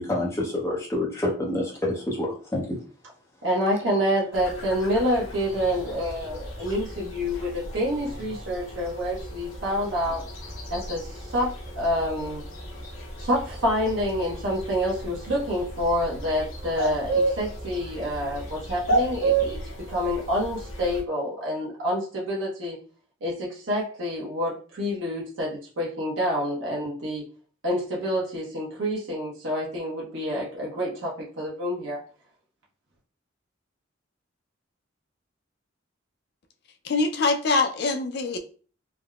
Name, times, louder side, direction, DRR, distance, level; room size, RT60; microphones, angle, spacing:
voice 1, 0.0-2.8, left 1 dB, 15° left, -3 dB, 0.7 m, -27 dB
voice 2, 3.4-10.2 10.7-12.4 13.2-19.6 19.9-22.8 23.2-27.2 27.6-32.0, equal, 70° right, -4 dB, 0.8 m, -27 dB
sound 1, 4.3-21.0, right 3 dB, 80° left, 0.7 m, -33 dB
voice 3, 36.8-38.4, left 3 dB, 50° left, 6 dB, 0.4 m, -24 dB
3.4 x 2.0 x 2.3 m, 0.39 s
head